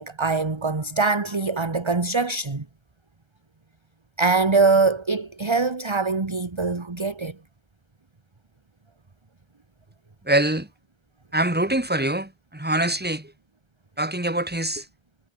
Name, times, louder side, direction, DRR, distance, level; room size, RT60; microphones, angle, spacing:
voice 1, 0.0-2.6 4.2-7.3, right 4 dB, 25° right, 1.3 m, -23 dB
voice 2, 10.3-10.7 11.3-13.3 14.0-14.8, right 1 dB, 10° right, 2.0 m, -24 dB
omnidirectional pair, 1.1 m